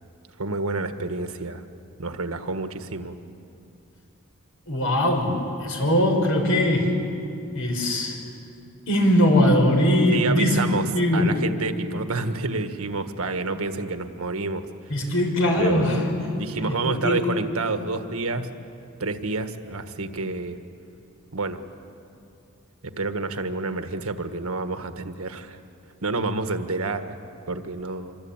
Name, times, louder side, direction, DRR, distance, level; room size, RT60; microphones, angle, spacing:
voice 1, 0.4-1.6 2.0-3.2 10.1-14.7 15.6-16.0 16.3-18.5 19.0-20.6 21.3-21.6 22.8-25.6 26.0-27.2 27.5-28.2, right 3 dB, 90° right, 8 dB, 1.5 m, -29 dB
voice 2, 4.7-7.0 7.5-8.2 8.9-10.6 10.9-11.3 14.9-17.2, left 1 dB, 75° left, 2 dB, 5.5 m, -21 dB
26.0 x 24.5 x 8.9 m, 2.6 s
head